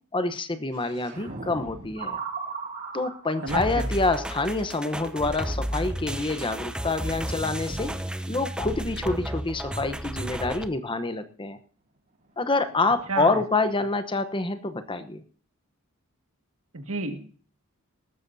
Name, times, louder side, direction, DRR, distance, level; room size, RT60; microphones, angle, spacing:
voice 1, 0.1-2.2 2.9-7.9 8.3-11.6 12.4-15.2, left 3 dB, 25° left, 11 dB, 0.9 m, -27 dB
sound 1, 0.7-5.0 5.4-5.6 7.0-7.8 8.2-9.3 12.2-12.3 12.5-13.2, right 4 dB, 40° right, 5.1 m, -39 dB
voice 2, 3.4-3.9 13.1-13.4 16.7-17.2, right 3 dB, 75° right, 6 dB, 1.9 m, -30 dB
sound 2, 3.5-10.7, right 1 dB, 5° right, 0.7 m, -32 dB
19.0 x 13.5 x 2.7 m, 0.42 s
head